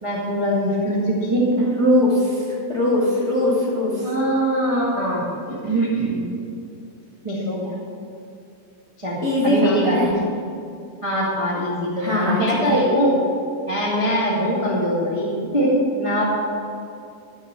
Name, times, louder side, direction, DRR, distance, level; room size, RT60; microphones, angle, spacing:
voice 1, 0.0-1.6 4.0-6.3 7.2-7.7 9.0-10.0 11.0-13.2 13.7-16.2, equal, 20° right, -6 dB, 0.7 m, -22 dB
voice 2, 1.6-2.4 2.7-4.1 9.2-10.1 12.0-12.8, left 1 dB, 30° left, -7 dB, 1.3 m, -20 dB
13.0 x 4.9 x 8.0 m, 2.5 s
omnidirectional pair, 3.9 m